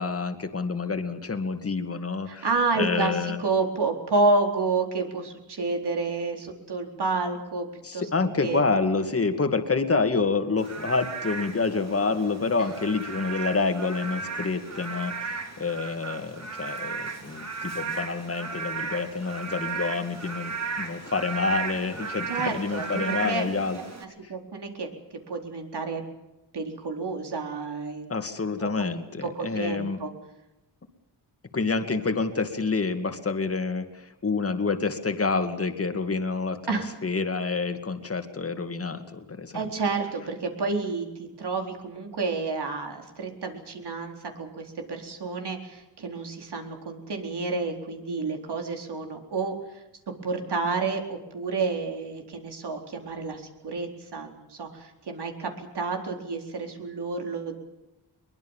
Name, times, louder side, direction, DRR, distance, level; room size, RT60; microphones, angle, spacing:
voice 1, 0.0-3.4 7.8-23.8 24.2-24.3 28.1-30.0 31.5-39.7, left 4 dB, 35° left, 7 dB, 2.3 m, -28 dB
voice 2, 2.3-8.1 8.4-8.6 22.3-23.5 24.3-26.0 26.5-28.1 28.6-28.9 29.2-30.1 36.7-36.9 39.5-57.6, right 3 dB, 70° right, 4 dB, 4.2 m, -30 dB
Frog / Rain, 10.6-24.0, right 5 dB, 40° right, 3.4 m, -35 dB
23.0 x 21.5 x 7.3 m, 0.96 s
wide cardioid pair, 95°, 42 cm